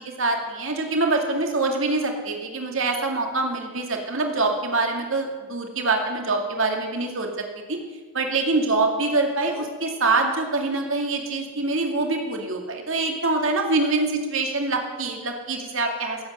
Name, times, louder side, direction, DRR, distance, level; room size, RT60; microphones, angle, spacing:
voice 1, 0.2-7.8 8.1-16.2, right 3 dB, 65° right, 3 dB, 2.2 m, -25 dB
16.5 x 8.4 x 7.8 m, 1.4 s
head